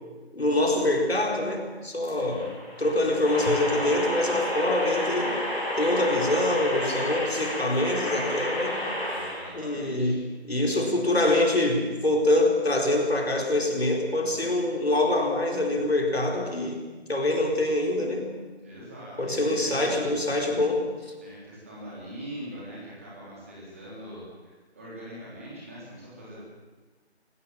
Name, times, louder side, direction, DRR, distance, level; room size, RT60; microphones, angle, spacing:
voice 1, 0.3-2.4 2.8-5.4 5.8-8.8 9.5-10.2 10.4-16.8 17.1-18.3 19.2-20.9, left 1 dB, 65° left, 2 dB, 4.5 m, -25 dB
voice 2, 1.9-2.5 9.0-10.2 18.6-20.2 21.2-26.4, equal, 10° right, -6 dB, 3.3 m, -42 dB
sound 1, 2.0-9.5, equal, 10° left, 6.3 m, -31 dB
21.5 x 16.5 x 7.6 m, 1.3 s
figure-of-eight pair, 175°, 33 cm